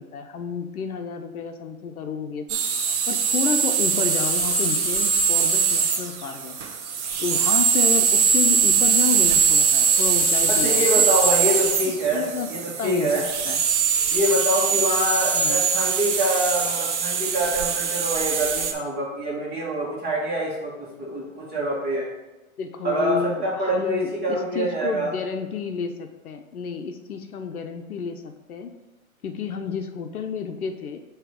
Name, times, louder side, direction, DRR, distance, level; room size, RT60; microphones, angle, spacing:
voice 1, 0.0-2.6 3.1-6.6 7.2-11.0 11.9-13.6 15.3-15.6 22.6-28.7 29.2-31.0, left 5 dB, 85° left, 7 dB, 0.8 m, -30 dB
sound 1, 2.5-18.7, right 6 dB, 55° right, 1.0 m, -22 dB
voice 2, 10.5-13.3 14.1-22.1 22.8-25.1, equal, 20° right, -4 dB, 2.2 m, -25 dB
7.6 x 3.1 x 4.8 m, 1.1 s
hypercardioid pair, 120°, 42 cm